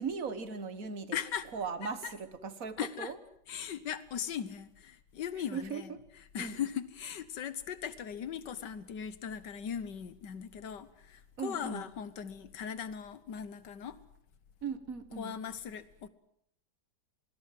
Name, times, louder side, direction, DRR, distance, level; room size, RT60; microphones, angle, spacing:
voice 1, 0.0-3.2 5.3-6.0 6.4-6.6 11.4-11.9 14.6-15.4, right 5 dB, 55° right, 13 dB, 1.9 m, -39 dB
voice 2, 1.1-1.5 1.8-2.2 2.8-3.1 3.5-14.0 15.1-16.1, left 8 dB, 85° left, 15 dB, 1.8 m, -39 dB
26.5 x 20.0 x 7.7 m, 0.72 s
omnidirectional pair, 1.8 m